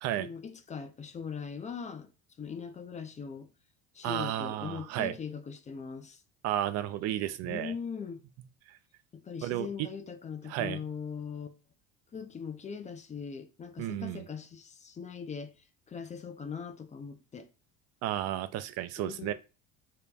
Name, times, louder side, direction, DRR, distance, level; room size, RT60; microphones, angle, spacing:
voice 1, 0.2-2.1 2.4-3.5 3.9-6.2 7.4-8.2 9.1-11.5 12.1-15.5 15.9-17.5 19.0-19.3, left 6 dB, 25° left, 0.5 m, -40 dB
voice 2, 4.0-5.2 6.4-7.7 8.7-8.8 9.4-9.9 10.5-10.8 13.8-14.2 18.0-19.3, right 12 dB, 55° right, 0.4 m, -33 dB
5.0 x 2.9 x 2.2 m
supercardioid pair, 100°, 31 cm